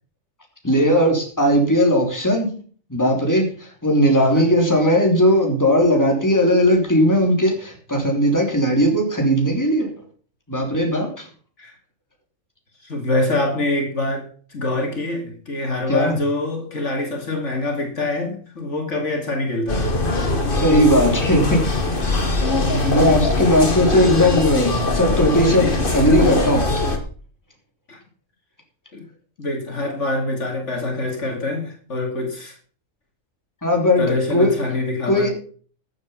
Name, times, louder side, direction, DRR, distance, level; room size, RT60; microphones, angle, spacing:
voice 1, 0.6-2.5 2.9-9.9 10.5-11.3 15.9-16.2 20.6-21.7 22.0-22.2 22.9-26.7 33.6-34.0 34.3-34.6 35.1-35.3, equal, 15° left, 1 dB, 3.4 m, -18 dB
voice 2, 4.1-4.5 11.6-11.8 12.8-19.9 23.1-23.3 27.9-28.0 28.9-29.0 29.4-32.6 34.0-35.3, left 2 dB, 65° left, 3 dB, 2.7 m, -25 dB
sound 1, 19.7-27.0, left 2 dB, 40° left, 2.1 m, -21 dB
13.5 x 8.1 x 5.6 m, 0.42 s
omnidirectional pair, 1.4 m